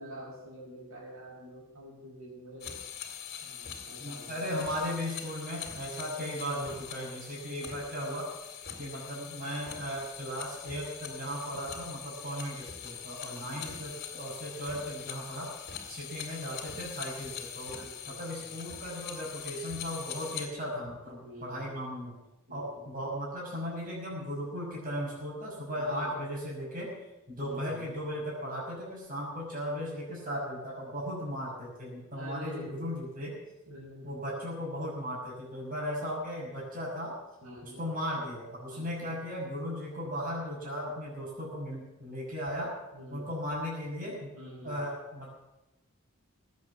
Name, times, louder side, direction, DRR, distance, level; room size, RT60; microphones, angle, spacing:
voice 1, 0.0-2.7 3.4-4.4 13.2-13.8 17.8-18.5 21.2-21.8 22.5-22.9 25.7-26.3 27.4-27.9 32.1-32.9 33.7-34.1 37.4-37.9 38.7-39.1 42.9-43.3 44.3-44.8, equal, 75° right, -3 dB, 5.9 m, -47 dB
sound 1, 2.6-20.5, left 8 dB, 50° left, 2.3 m, -43 dB
voice 2, 4.0-8.3 8.8-15.5 15.9-17.8 18.2-22.1 22.5-26.9 27.3-33.3 34.0-37.2 37.6-42.7 43.1-44.3 44.6-45.3, equal, 40° right, -4 dB, 6.1 m, -36 dB
19.5 x 8.5 x 7.2 m, 0.96 s
head